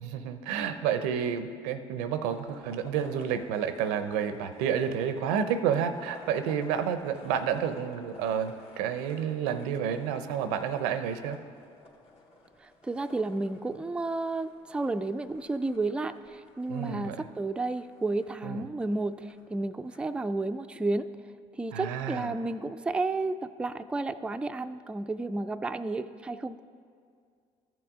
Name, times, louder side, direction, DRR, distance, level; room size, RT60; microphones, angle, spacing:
voice 1, 0.0-11.4 16.7-17.2 18.4-18.7 21.7-22.3, right 8 dB, 85° right, 10 dB, 0.5 m, -30 dB
sound 1, 2.3-20.1, left 2 dB, 45° left, 1.8 m, -53 dB
voice 2, 12.6-21.1 21.5-26.6, right 2 dB, 10° right, 9 dB, 0.3 m, -32 dB
14.0 x 6.0 x 3.6 m, 2.2 s
supercardioid pair, 80°, 14 cm